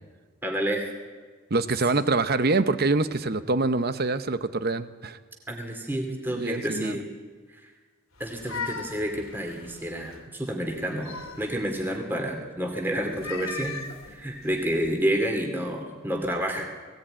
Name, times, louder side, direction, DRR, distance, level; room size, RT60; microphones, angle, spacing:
voice 1, 0.4-0.8 1.9-2.0 5.5-7.0 8.2-13.8 14.1-16.6, equal, 10° right, 2 dB, 2.3 m, -29 dB
voice 2, 1.5-5.2 6.3-6.9, right 3 dB, 45° right, 12 dB, 0.8 m, -25 dB
sound 1, 8.2-10.2 10.7-11.9 13.0-14.9, left 4 dB, 75° left, 2.5 m, -39 dB
19.5 x 16.5 x 8.9 m, 1.5 s
head